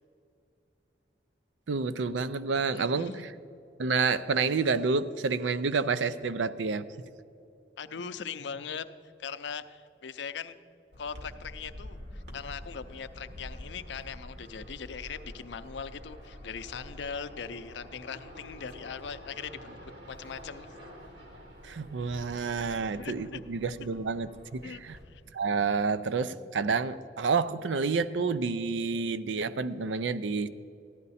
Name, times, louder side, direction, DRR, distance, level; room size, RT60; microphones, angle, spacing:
voice 1, 1.7-3.3 3.8-6.9 21.6-25.0 25.3-30.5, right 4 dB, 90° right, 14 dB, 0.5 m, -29 dB
voice 2, 2.7-3.2 7.8-8.9 9.2-10.6 11.0-19.8 20.1-20.7 22.6-22.7 23.0-23.4 24.6-25.2, left 6 dB, 80° left, 12 dB, 0.5 m, -40 dB
sound 1, 10.9-25.0, equal, 70° right, 2.1 m, -47 dB
14.5 x 11.0 x 4.2 m, 2.6 s
head